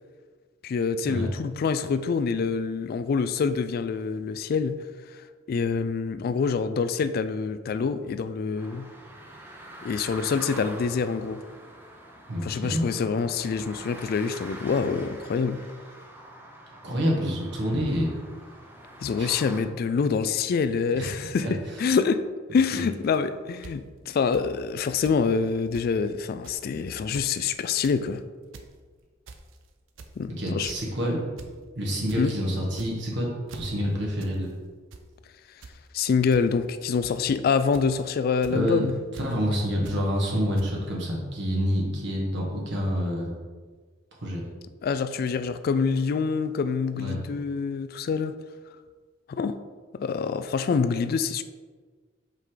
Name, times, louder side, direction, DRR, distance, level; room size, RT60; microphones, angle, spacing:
voice 1, 0.6-4.8 5.5-8.9 9.8-11.4 12.4-15.6 19.0-21.5 21.8-22.2 22.5-28.2 30.2-30.7 32.1-32.3 35.9-38.9 44.8-48.3 49.3-49.6 50.0-51.4, left 5 dB, 50° left, 11 dB, 0.3 m, -26 dB
sound 1, 8.6-19.6, right 1 dB, 10° right, 0.8 m, -45 dB
voice 2, 12.3-12.8 16.8-18.1 19.2-19.4 20.9-21.1 21.4-21.5 22.7-22.8 30.3-31.2 31.7-34.5 38.5-38.8 39.1-43.3 44.2-44.4 46.9-47.2, equal, 65° right, -2 dB, 1.5 m, -27 dB
sound 2, 23.6-23.7 24.3-24.4 25.0-25.2 25.5-25.6 25.7-25.9 26.4-26.7 27.0-27.3 27.7-28.0 28.4-28.7 29.3-29.6 30.0-30.2 30.7-30.9 31.4-31.5 31.8-32.2 32.7-33.1 33.5-33.7 34.2-34.4 34.7-35.0 35.6-35.8 36.3-36.4 37.0-37.3 37.7-38.0 38.4-38.6 39.1-39.3 39.9-40.0 40.6-40.7, right 4 dB, 85° right, 0.6 m, -44 dB
5.5 x 4.9 x 3.8 m, 1.5 s
head